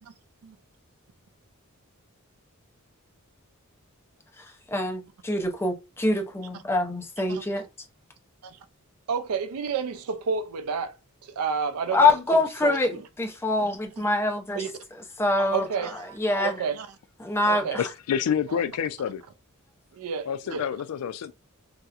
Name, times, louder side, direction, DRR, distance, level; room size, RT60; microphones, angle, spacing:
voice 1, 4.4-7.6 11.9-14.6 15.2-15.6 16.2-16.6 17.2-17.8, left 2 dB, 10° left, 0.5 m, -25 dB
voice 2, 9.1-13.0 13.6-14.1 14.5-14.7 15.5-16.2 16.4-16.9 17.4-17.8 18.5-18.6 19.9-20.7, right 5 dB, 85° right, 0.4 m, -31 dB
voice 3, 17.8-19.2 20.3-21.3, left 8 dB, 85° left, 0.3 m, -28 dB
2.8 x 2.0 x 2.3 m
head